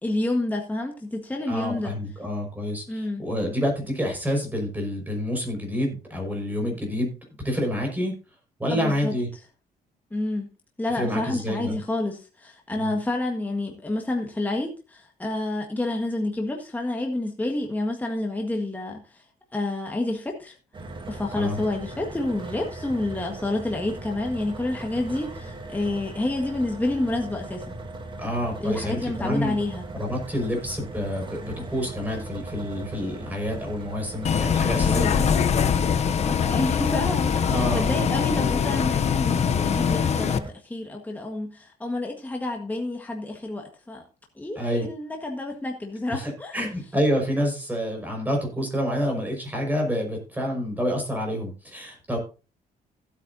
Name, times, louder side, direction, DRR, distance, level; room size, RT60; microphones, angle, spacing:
voice 1, 0.0-1.9 2.9-3.2 8.7-9.1 10.1-10.5 10.8-19.2 19.5-20.6 21.1-27.8 28.6-29.9 34.7-35.9 36.2-44.0 44.4-46.6, left 2 dB, 10° left, 1 dB, 1.6 m, -29 dB
voice 2, 1.5-7.1 7.4-8.1 8.6-9.3 10.9-11.7 12.8-12.9 21.3-21.6 28.2-29.5 29.9-35.2 37.4-38.1 44.5-44.9 46.1-52.2, equal, 10° right, 2 dB, 5.2 m, -28 dB
sound 1, 20.7-40.5, right 2 dB, 30° right, 1.9 m, -38 dB
Bus, 34.2-40.4, left 7 dB, 40° left, 0.7 m, -23 dB
16.0 x 8.7 x 2.7 m, 0.33 s
cardioid pair, 130°, 16 cm